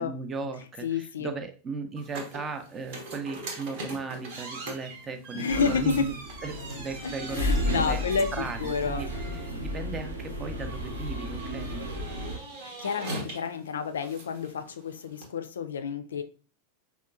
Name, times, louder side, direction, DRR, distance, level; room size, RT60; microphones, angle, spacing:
voice 1, 0.0-6.1 6.4-8.0 8.3-11.9, right 4 dB, 20° right, 8 dB, 0.5 m, -37 dB
voice 2, 0.8-1.3 5.3-6.1 7.0-8.3 8.6-9.0 12.6-16.2, left 5 dB, 65° left, 8 dB, 0.4 m, -30 dB
sound 1, 2.0-15.3, right 2 dB, 50° right, 0.9 m, -42 dB
sound 2, 5.5-12.4, left 1 dB, 80° right, 0.6 m, -33 dB
4.3 x 2.3 x 2.4 m, 0.37 s
figure-of-eight pair, 90°, 0 cm